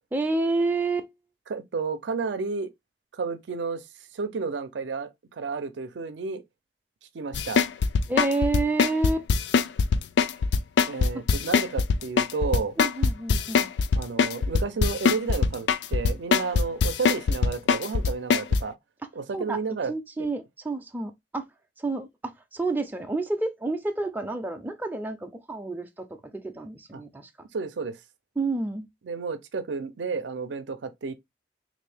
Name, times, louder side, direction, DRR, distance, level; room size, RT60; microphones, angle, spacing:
voice 1, 0.1-1.1 8.1-9.3 11.1-11.2 12.8-13.7 19.3-19.6 19.9-21.5 21.8-27.3 28.4-28.9, right 3 dB, 10° right, 0.4 m, -29 dB
voice 2, 1.5-2.7 3.1-3.9 4.1-6.4 7.1-7.6 10.9-12.7 13.9-18.7 19.1-19.9 20.2-20.3 26.9-27.0 27.5-28.0 29.0-31.2, right 4 dB, 85° right, 0.5 m, -31 dB
sound 1, 7.3-18.6, left 5 dB, 70° left, 0.3 m, -21 dB
3.4 x 2.6 x 3.4 m
head